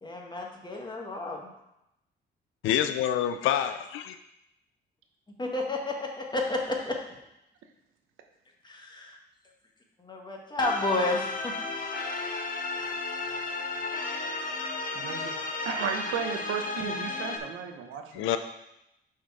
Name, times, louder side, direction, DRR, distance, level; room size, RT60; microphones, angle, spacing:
voice 1, 0.0-1.5 5.4-7.0 8.6-9.2 10.0-11.5, left 2 dB, 20° left, 0 dB, 1.4 m, -31 dB
voice 2, 2.6-4.2 18.1-18.4, left 10 dB, 90° left, 9 dB, 0.5 m, -27 dB
sound 1, 10.6-17.4, left 3 dB, 45° left, 0.9 m, -33 dB
voice 3, 14.9-15.4 15.6-18.4, right 7 dB, 85° right, 5 dB, 0.9 m, -34 dB
6.3 x 4.5 x 4.8 m, 0.85 s
cardioid pair, 90°, 20 cm